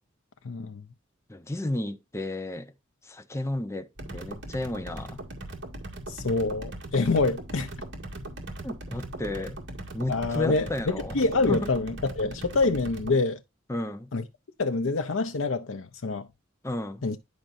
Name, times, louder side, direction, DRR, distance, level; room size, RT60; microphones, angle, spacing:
voice 1, 0.4-0.8 6.1-7.7 10.1-13.4 14.1-14.2 14.6-16.3 17.0-17.2, left 3 dB, 80° left, 0.7 m, -26 dB
voice 2, 1.3-2.7 3.0-5.2 8.6-9.6 9.9-11.7 13.7-14.1 16.6-17.1, left 1 dB, 15° left, 0.7 m, -33 dB
sound 1, 4.0-13.1, right 1 dB, 65° right, 2.2 m, -39 dB
10.5 x 5.1 x 2.6 m
head